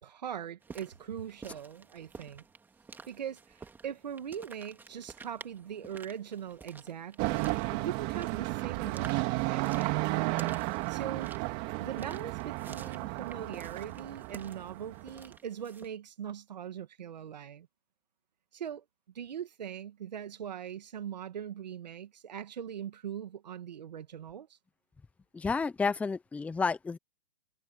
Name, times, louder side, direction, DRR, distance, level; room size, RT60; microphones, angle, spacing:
voice 1, 0.0-2.4 3.1-11.3 11.8-17.7 18.5-18.8 19.1-24.6, right 9 dB, 80° right, 1.9 m, -41 dB
sound 1, 0.6-15.9, right 4 dB, 10° right, 2.4 m, -52 dB
sound 2, 7.2-15.2, right 24 dB, 35° right, 2.7 m, -33 dB
voice 2, 25.3-27.0, left 4 dB, 5° left, 1.0 m, -30 dB
hypercardioid pair, 145°, 21 cm